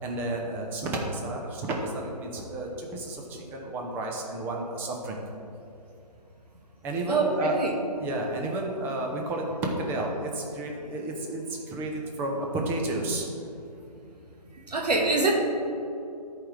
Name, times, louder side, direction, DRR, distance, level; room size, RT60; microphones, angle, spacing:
voice 1, 0.0-5.2 6.8-7.6 8.0-13.3, right 2 dB, 10° right, 0 dB, 0.6 m, -31 dB
voice 2, 7.1-7.7 14.7-15.3, right 3 dB, 75° right, -1 dB, 1.5 m, -24 dB
13.5 x 4.9 x 3.3 m, 2.7 s
hypercardioid pair, 150°, 21 cm